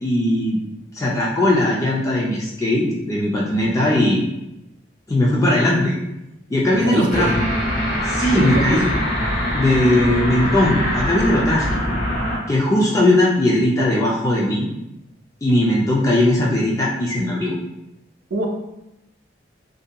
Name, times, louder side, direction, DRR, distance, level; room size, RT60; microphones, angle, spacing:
voice 1, 0.0-0.6 0.9-4.2 5.1-6.0 6.5-7.3 8.0-8.9 9.5-12.0 12.5-14.7 15.4-17.5, left 1 dB, 20° left, -4 dB, 0.3 m, -19 dB
voice 2, 6.8-7.5 8.3-8.8 18.3-18.5, right 1 dB, 80° right, 0 dB, 0.5 m, -23 dB
sound 1, 7.1-12.4, equal, 55° left, 1.0 m, -23 dB
2.6 x 2.6 x 2.2 m, 0.92 s
head